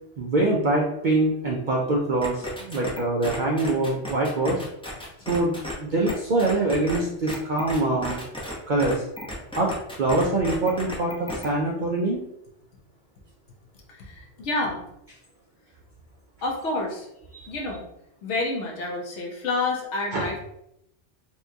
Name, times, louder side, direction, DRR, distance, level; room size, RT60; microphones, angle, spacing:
voice 1, 0.2-4.6 5.3-8.2 8.7-9.0 9.5-9.7 10.0-12.2 17.4-17.5 20.1-20.3, right 2 dB, 55° right, -2 dB, 0.6 m, -24 dB
sound 1, 2.2-5.7 6.1-6.2 6.4-7.0 7.3-8.5 8.8-11.5, left 1 dB, 5° left, 0.5 m, -34 dB
voice 2, 13.9-14.8 16.4-17.1 17.5-17.9 18.2-20.4, left 2 dB, 70° left, 0 dB, 1.1 m, -29 dB
4.4 x 2.3 x 2.7 m, 0.78 s
omnidirectional pair, 1.2 m